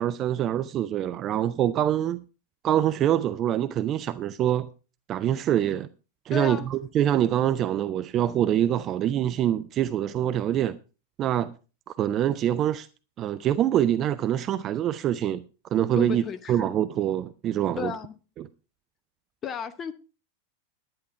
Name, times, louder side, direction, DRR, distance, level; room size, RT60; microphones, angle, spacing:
voice 1, 0.0-2.2 2.6-4.7 5.1-5.9 6.3-10.8 11.2-11.5 12.0-12.9 13.2-15.4 15.7-16.2 16.5-17.9 18.4-18.5, right 11 dB, 30° right, 0.5 m, -25 dB
voice 2, 6.3-6.7 16.0-16.7 17.8-18.1 19.4-19.9, left 6 dB, 25° left, 0.8 m, -33 dB
10.5 x 10.5 x 4.5 m
figure-of-eight pair, 90°, 0 cm